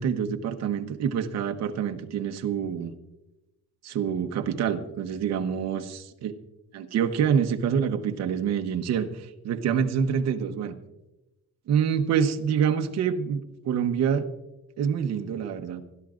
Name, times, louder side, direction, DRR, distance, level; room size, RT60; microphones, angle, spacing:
voice 1, 0.0-2.9 3.8-6.3 6.7-10.7 11.7-13.4 13.6-14.3 14.8-15.8, right 7 dB, 55° right, 6 dB, 1.0 m, -26 dB
25.0 x 11.5 x 2.5 m, 0.96 s
cardioid pair, 160°, 32 cm